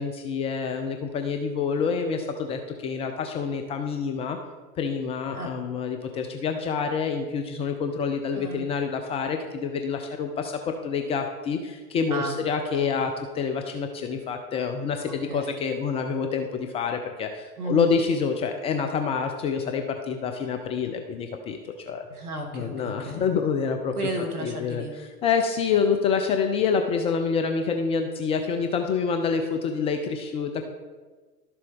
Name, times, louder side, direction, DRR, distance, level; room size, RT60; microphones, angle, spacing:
voice 1, 0.0-4.4 4.8-22.0 22.5-24.0 24.4-24.8 25.2-30.7, left 6 dB, 15° left, 5 dB, 0.3 m, -27 dB
voice 2, 8.3-8.7 12.1-12.4 12.7-13.1 15.0-15.5 17.6-18.0 22.1-23.2 23.9-25.0, right 1 dB, 80° right, 2 dB, 2.1 m, -33 dB
12.0 x 6.8 x 3.5 m, 1.4 s
figure-of-eight pair, 90°, 44 cm